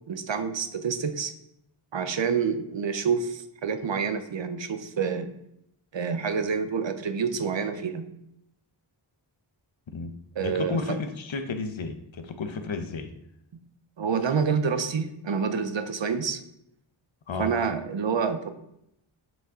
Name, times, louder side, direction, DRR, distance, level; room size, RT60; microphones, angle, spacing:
voice 1, 0.1-1.3 1.9-5.3 5.9-8.1 10.4-11.0 14.0-16.4 17.4-18.5, right 6 dB, 60° right, 9 dB, 0.9 m, -28 dB
voice 2, 10.4-13.1 17.3-17.6, left 4 dB, 65° left, 8 dB, 0.9 m, -32 dB
7.6 x 5.7 x 3.8 m, 0.79 s
wide cardioid pair, 55°, 49 cm